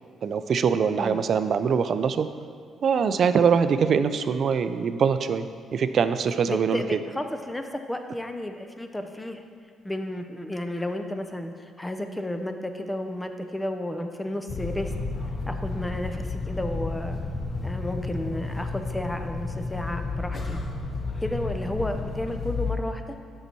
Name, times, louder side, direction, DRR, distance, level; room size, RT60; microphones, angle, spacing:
voice 1, 0.2-2.3 2.8-6.8, right 6 dB, 55° right, 11 dB, 0.3 m, -23 dB
voice 2, 6.5-9.4 9.8-11.5 11.8-14.9 15.5-17.2 17.6-20.6 21.2-23.0, left 1 dB, 10° left, 6 dB, 0.6 m, -32 dB
sound 1, 14.5-22.8, left 3 dB, 40° left, 0.8 m, -32 dB
6.8 x 5.6 x 4.5 m, 2.1 s
cardioid pair, 90°, 0 cm